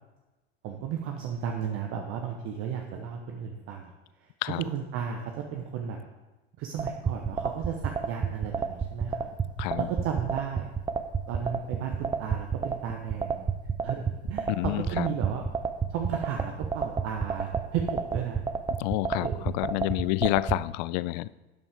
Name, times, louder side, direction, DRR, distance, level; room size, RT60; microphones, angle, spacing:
voice 1, 0.6-3.9 4.2-6.0 6.6-9.3 9.8-10.7 11.3-13.4 13.8-15.4 15.9-18.4 19.1-19.4, right 8 dB, 40° right, 3 dB, 1.1 m, -34 dB
sound 1, 6.8-20.6, right 6 dB, 15° right, 0.7 m, -29 dB
voice 2, 14.5-15.1 18.8-21.3, left 19 dB, 45° left, 19 dB, 0.4 m, -28 dB
12.0 x 9.7 x 3.6 m, 1.1 s
figure-of-eight pair, 80°, 32 cm